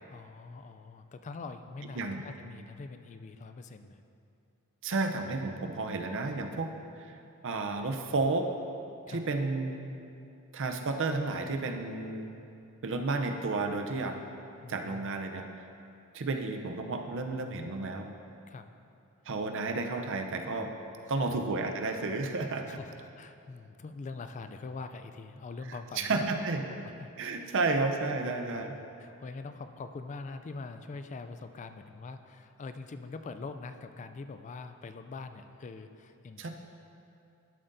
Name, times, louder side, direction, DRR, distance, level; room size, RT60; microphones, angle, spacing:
voice 1, 0.0-4.0 9.1-9.2 14.6-15.1 18.5-18.7 21.3-21.4 22.7-26.3 26.8-27.7 28.5-36.5, left 3 dB, 35° left, 9 dB, 0.3 m, -44 dB
voice 2, 4.8-6.7 7.0-7.1 7.4-8.5 9.1-9.9 10.5-12.3 12.8-14.2 14.7-15.7 16.1-18.1 19.3-20.7 21.1-22.8 26.0-26.6 27.2-28.8 36.4-36.5, right 3 dB, 60° right, 5 dB, 0.6 m, -32 dB
12.0 x 7.5 x 2.6 m, 2.7 s
head